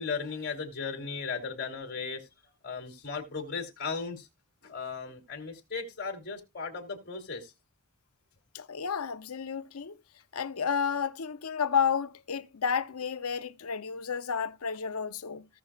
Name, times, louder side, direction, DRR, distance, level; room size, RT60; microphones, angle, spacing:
voice 1, 0.0-2.3 2.6-4.3 4.6-7.5, left 5 dB, 45° left, 3.2 m, -36 dB
voice 2, 8.5-10.0 10.3-15.5, left 6 dB, 80° left, 0.7 m, -31 dB
18.5 x 6.2 x 2.4 m
head